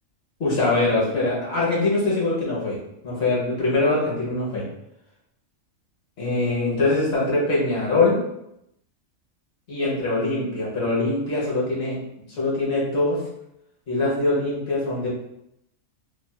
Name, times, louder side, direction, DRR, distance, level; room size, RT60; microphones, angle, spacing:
voice 1, 0.4-2.8 3.0-4.6 6.2-8.2 9.7-13.2 13.9-15.1, left 2 dB, 55° left, -5 dB, 1.1 m, -23 dB
3.1 x 2.4 x 2.2 m, 0.80 s
omnidirectional pair, 1.4 m